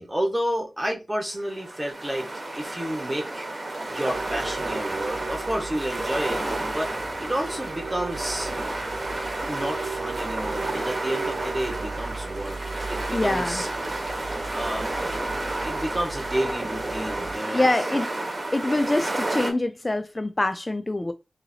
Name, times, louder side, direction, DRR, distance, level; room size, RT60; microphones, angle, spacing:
voice 1, 0.0-2.3 2.6-3.5 3.9-6.9 7.2-8.5 9.5-13.7 14.5-14.9 15.4-17.7 21.0-21.1, right 1 dB, 20° right, 1.4 m, -30 dB
sound 1, 1.3-19.5, right 2 dB, 45° right, 1.1 m, -31 dB
sound 2, 4.1-17.4, right 4 dB, 85° right, 0.4 m, -37 dB
voice 2, 13.1-13.6 17.5-18.1 18.5-21.1, left 2 dB, 35° left, 0.3 m, -25 dB
3.7 x 2.8 x 2.8 m
cardioid pair, 50°, 0 cm